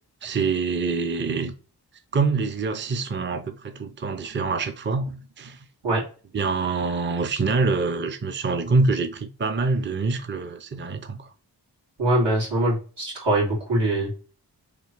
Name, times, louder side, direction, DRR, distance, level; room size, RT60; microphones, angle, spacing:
voice 1, 0.2-1.5 2.1-5.6 6.3-11.3, right 4 dB, 30° right, 0.5 m, -25 dB
voice 2, 12.0-14.1, right 1 dB, 90° right, 2.3 m, -23 dB
3.7 x 3.2 x 4.5 m
wide cardioid pair, 55°, 41 cm